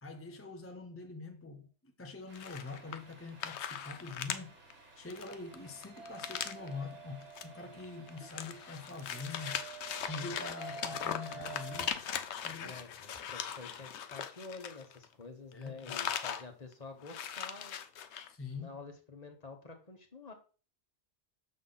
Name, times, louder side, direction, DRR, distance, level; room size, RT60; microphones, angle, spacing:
voice 1, 0.0-9.6 10.1-12.0 12.4-12.9 15.5-16.0 18.3-18.7, left 4 dB, 15° left, 0.5 m, -45 dB
sound 1, 2.3-3.1 3.4-4.4 4.7-4.8 5.1-6.7 7.2-7.4 7.8-15.2 15.5-16.4 16.7-16.8 17.0-18.3, left 8 dB, 75° left, 0.9 m, -40 dB
Truck, 2.3-10.1, right 2 dB, 85° right, 2.1 m, -59 dB
sound 2, 5.5-11.9, right 4 dB, 60° right, 1.6 m, -49 dB
voice 2, 12.6-17.8 18.5-20.3, left 3 dB, 35° left, 1.2 m, -49 dB
6.6 x 5.8 x 3.9 m
omnidirectional pair, 1.2 m